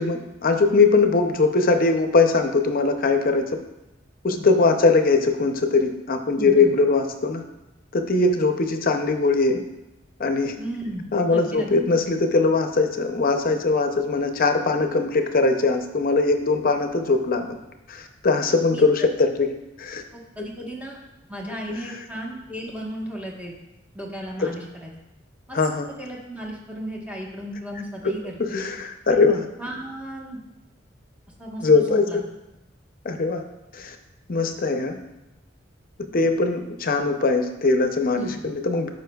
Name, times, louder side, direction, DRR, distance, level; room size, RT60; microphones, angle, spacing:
voice 1, 0.0-3.6 4.2-7.4 7.9-9.6 10.2-10.5 11.1-17.6 17.9-19.5 19.8-20.0 24.4-24.5 25.5-25.9 28.0-28.1 28.4-29.4 31.6-32.2 33.0-33.4 33.7-34.0 34.3-35.0 36.1-38.9, left 3 dB, 50° left, 6 dB, 0.6 m, -21 dB
voice 2, 6.3-6.7 10.6-11.0 11.3-11.7 18.7-18.8 20.1-21.0 21.3-23.6 23.9-24.9 25.5-25.6 26.0-28.6 29.1-30.4 31.4-32.2 38.2-38.4, right 1 dB, 10° right, -2 dB, 1.2 m, -35 dB
12.5 x 5.1 x 2.3 m, 0.96 s
head